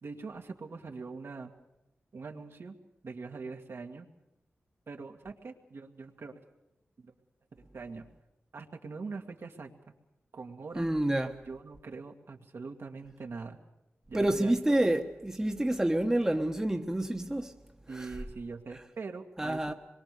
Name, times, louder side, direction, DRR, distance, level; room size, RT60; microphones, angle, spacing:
voice 1, 0.0-1.5 2.1-2.8 3.0-4.1 4.9-6.4 7.0-7.1 7.5-8.1 8.5-9.7 10.3-10.9 11.5-13.6 14.1-14.8 17.9-19.7, right 4 dB, 65° right, 2.1 m, -43 dB
voice 2, 10.8-11.4 14.1-17.5 17.9-18.1 19.4-19.7, right 1 dB, 10° right, 1.2 m, -28 dB
26.0 x 22.5 x 6.8 m
wide cardioid pair, 120°, 4 cm